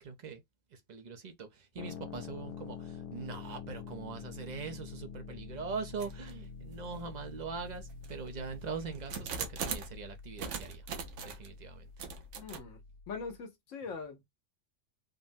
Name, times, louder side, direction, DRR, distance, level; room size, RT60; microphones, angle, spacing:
voice 1, 0.0-0.4 0.7-10.9 11.2-11.9, right 5 dB, 45° right, 0.7 m, -42 dB
sound 1, 1.8-13.4, left 5 dB, 55° left, 0.8 m, -47 dB
sound 2, 6.0-6.3 6.9-7.0 7.7-10.0 10.4-11.5 12.0-12.6, right 5 dB, 75° right, 1.1 m, -40 dB
voice 2, 12.4-12.8 13.1-14.2, left 5 dB, 85° left, 1.2 m, -42 dB
3.6 x 2.1 x 2.5 m
omnidirectional pair, 1.3 m